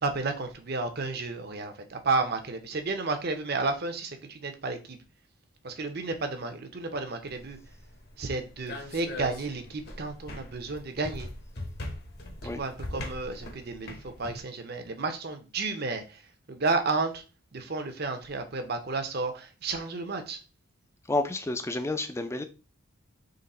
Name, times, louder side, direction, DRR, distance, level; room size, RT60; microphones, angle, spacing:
voice 1, 0.0-5.0 5.6-7.6 8.2-11.3 12.5-16.2 16.5-17.2 17.5-20.4, right 3 dB, 50° right, 0.7 m, -32 dB
sound 1, 7.3-14.4, left 1 dB, 50° left, 1.0 m, -41 dB
voice 2, 21.1-22.4, left 2 dB, 15° left, 0.4 m, -30 dB
3.9 x 3.1 x 4.2 m
head